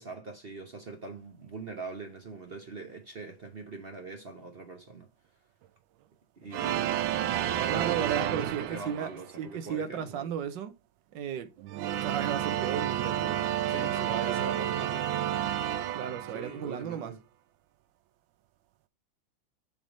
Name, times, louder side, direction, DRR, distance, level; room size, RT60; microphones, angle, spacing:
voice 1, 0.0-5.1 6.4-6.9 7.3-10.3 13.7-15.1 16.3-17.2, right 4 dB, 45° right, 0.8 m, -42 dB
sound 1, 6.5-9.3 11.6-16.8, right 11 dB, 85° right, 1.4 m, -31 dB
voice 2, 7.7-9.1 9.4-10.7 11.1-11.5 12.0-14.8 15.9-17.1, right 8 dB, 70° right, 1.5 m, -35 dB
7.3 x 3.6 x 5.0 m
omnidirectional pair, 2.1 m